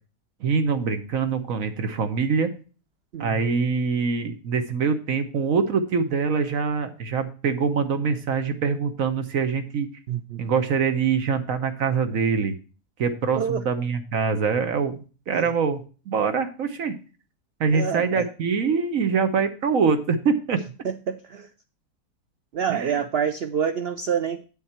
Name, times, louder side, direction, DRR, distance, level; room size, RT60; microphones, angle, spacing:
voice 1, 0.4-2.5 3.2-9.9 10.4-12.5 13.0-15.0 15.3-16.9 17.6-20.6 22.7-23.0, right 5 dB, 60° right, 9 dB, 1.2 m, -24 dB
voice 2, 3.1-3.5 10.1-10.4 13.3-13.6 15.3-15.5 17.7-18.3 20.8-21.5 22.5-24.4, right 7 dB, 80° right, 10 dB, 0.5 m, -27 dB
8.4 x 7.3 x 4.3 m, 0.36 s
omnidirectional pair, 1.7 m